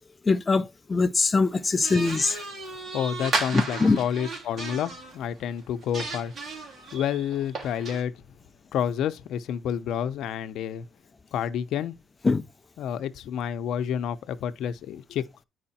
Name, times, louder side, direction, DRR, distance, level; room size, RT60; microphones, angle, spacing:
voice 1, 0.2-2.4 3.5-4.0 12.2-12.4, left 4 dB, 20° left, 0.6 m, -22 dB
sound 1, 1.8-5.2 5.6-8.0, right 3 dB, 40° right, 3.3 m, -34 dB
voice 2, 2.9-6.6 6.9-8.1 8.7-10.9 11.3-12.0 12.8-15.4, left 9 dB, 70° left, 0.8 m, -29 dB
9.9 x 4.9 x 4.3 m
cardioid pair, 125°, 0 cm